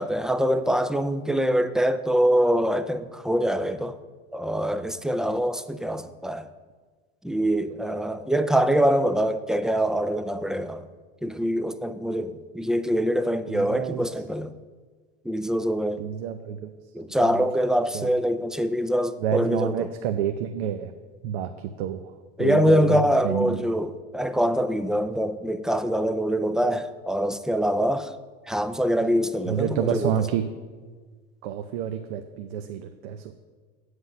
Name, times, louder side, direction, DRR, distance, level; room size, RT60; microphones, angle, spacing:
voice 1, 0.0-3.9 4.3-6.5 7.2-10.9 11.2-14.5 15.3-16.0 16.9-19.9 22.4-28.1 28.5-30.2, equal, ahead, 0.4 m, -24 dB
voice 2, 13.5-14.1 16.0-16.7 17.2-17.5 17.9-18.1 19.2-20.9 21.2-22.1 22.4-23.6 29.5-30.4 31.4-33.3, right 9 dB, 75° right, 0.7 m, -29 dB
8.0 x 7.9 x 5.6 m
supercardioid pair, 100°, 32 cm